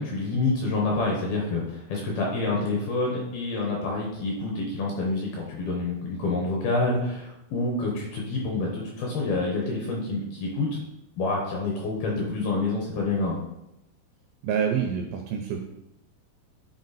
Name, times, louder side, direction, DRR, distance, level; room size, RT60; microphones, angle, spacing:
voice 1, 0.0-10.8 11.2-13.4, left 3 dB, 70° left, -1 dB, 2.4 m, -27 dB
voice 2, 14.4-15.6, right 7 dB, 80° right, 2 dB, 2.5 m, -27 dB
10.5 x 4.6 x 4.1 m, 0.87 s
omnidirectional pair, 5.6 m